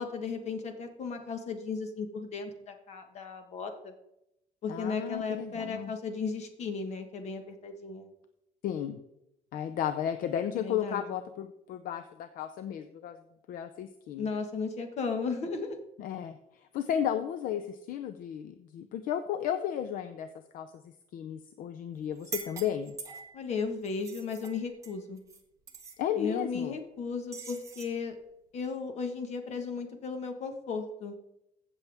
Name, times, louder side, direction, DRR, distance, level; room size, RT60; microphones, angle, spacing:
voice 1, 0.0-3.9 4.6-8.1 10.6-11.0 14.2-15.8 23.3-25.2 26.2-28.2 28.5-31.1, left 5 dB, 45° left, 6 dB, 1.4 m, -35 dB
voice 2, 4.7-5.9 8.6-9.0 9.5-13.2 13.5-14.3 16.0-16.4 16.7-20.3 20.5-22.9 26.0-26.8, left 9 dB, 65° left, 9 dB, 0.6 m, -34 dB
sound 1, 22.2-23.4 23.8-25.4 25.7-26.0 27.3-27.9, right 5 dB, 20° right, 1.1 m, -44 dB
15.0 x 7.0 x 3.5 m, 0.84 s
cardioid pair, 165°, 16 cm